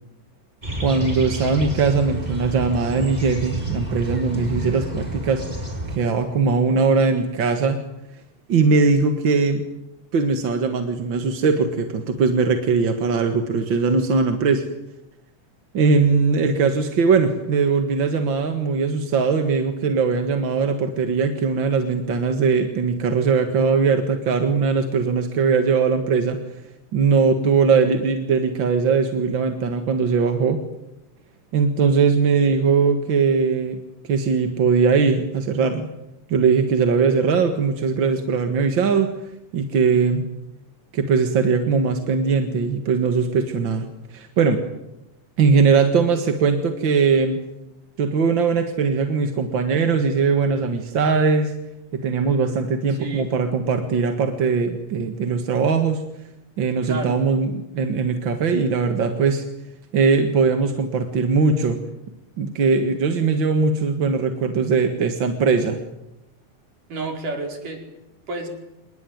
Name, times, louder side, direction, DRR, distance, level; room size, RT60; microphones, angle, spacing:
sound 1, 0.6-6.0, right 1 dB, 10° right, 4.1 m, -29 dB
voice 1, 0.8-5.4 5.9-7.8 8.5-9.6 10.1-14.6 15.7-26.4 26.9-30.6 31.5-33.8 34.0-35.9 36.3-39.1 39.5-40.2 40.9-44.6 45.4-47.4 48.0-51.5 51.9-56.0 56.6-59.4 59.9-61.8 62.4-65.8, right 5 dB, 45° right, 7 dB, 2.0 m, -20 dB
voice 2, 52.9-53.3 56.8-57.2 66.9-67.8 68.3-68.5, right 3 dB, 80° right, 3 dB, 6.4 m, -30 dB
28.0 x 20.0 x 9.4 m, 0.92 s
omnidirectional pair, 3.6 m